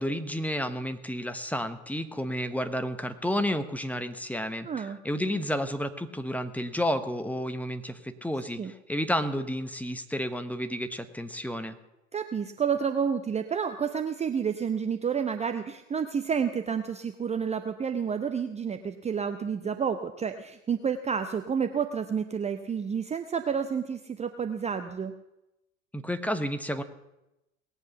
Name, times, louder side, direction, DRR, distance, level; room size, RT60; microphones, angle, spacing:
voice 1, 0.0-11.8 25.9-26.8, equal, 5° left, 9 dB, 1.1 m, -31 dB
voice 2, 4.6-5.0 8.6-8.7 12.1-25.1, right 7 dB, 15° right, 8 dB, 0.8 m, -30 dB
19.5 x 8.2 x 6.9 m, 0.94 s
figure-of-eight pair, 75°, 39 cm